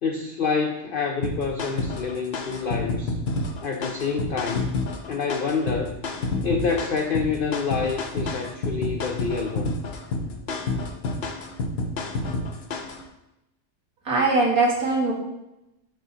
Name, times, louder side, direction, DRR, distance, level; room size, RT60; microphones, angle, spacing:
voice 1, 0.0-3.1 3.6-4.7 5.1-6.0 6.4-9.7, left 5 dB, 85° left, 3 dB, 0.4 m, -27 dB
sound 1, 1.2-13.0, left 2 dB, 55° left, 0.8 m, -29 dB
voice 2, 14.1-15.1, right 3 dB, 75° right, -3 dB, 2.0 m, -21 dB
11.0 x 3.9 x 2.8 m, 0.91 s
omnidirectional pair, 1.5 m